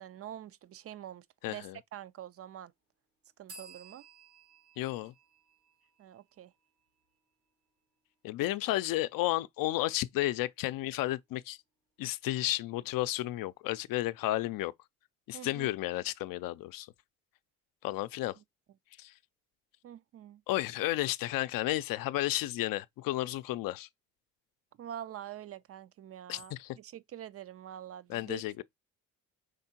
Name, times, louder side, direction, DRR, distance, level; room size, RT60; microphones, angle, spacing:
voice 1, 0.0-2.7 3.4-4.1 6.0-6.5 15.3-15.7 18.4-18.5 19.8-20.4 24.8-28.6, right 11 dB, 40° right, 0.5 m, -46 dB
voice 2, 1.4-1.8 4.8-5.1 8.2-11.6 12.0-14.7 15.3-16.9 17.8-18.3 19.0-19.1 20.5-23.9 26.3-26.8 28.1-28.6, left 16 dB, 65° left, 0.5 m, -32 dB
sound 1, 3.5-7.0, right 3 dB, 85° right, 1.9 m, -55 dB
5.1 x 3.6 x 2.7 m
supercardioid pair, 60°, 37 cm